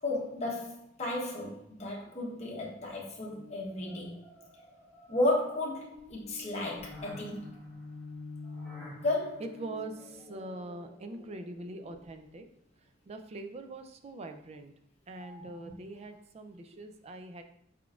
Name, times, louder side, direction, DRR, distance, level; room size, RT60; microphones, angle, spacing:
voice 1, 0.0-4.1 5.1-7.5 9.0-9.4 15.2-15.5, left 2 dB, 35° left, -3 dB, 1.0 m, -33 dB
sound 1, 3.3-12.4, left 3 dB, 5° right, 1.4 m, -48 dB
voice 2, 9.4-12.5 13.1-14.7 15.1-17.4, right 2 dB, 35° right, 7 dB, 0.4 m, -43 dB
4.4 x 3.9 x 2.4 m, 0.71 s
head